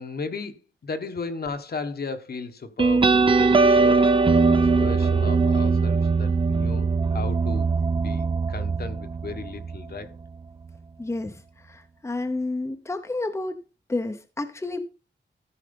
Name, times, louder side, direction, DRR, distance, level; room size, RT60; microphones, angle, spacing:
voice 1, 0.0-4.1 4.5-10.1, left 4 dB, 55° left, 1.2 m, -35 dB
sound 1, 2.8-9.9, right 4 dB, 25° right, 0.6 m, -21 dB
voice 2, 11.0-13.6 13.9-14.8, left 2 dB, 15° left, 0.8 m, -30 dB
14.0 x 4.9 x 5.2 m
wide cardioid pair, 160°, 20 cm